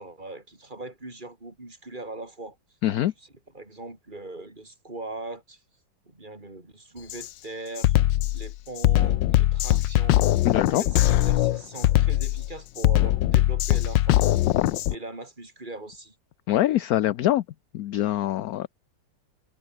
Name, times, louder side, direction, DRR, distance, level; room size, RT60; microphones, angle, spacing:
voice 1, 0.0-2.6 3.2-3.3 3.5-5.6 6.0-7.9 8.3-10.3 10.7-14.4 14.9-16.2, right 2 dB, 25° right, 5.1 m, -40 dB
voice 2, 2.8-3.1 10.4-10.8 16.5-17.4 17.7-18.7, left 13 dB, 65° left, 1.0 m, -24 dB
Drum kit, 7.1-7.3 7.8-15.0, left 14 dB, 80° left, 1.4 m, -21 dB
omnidirectional pair, 2.0 m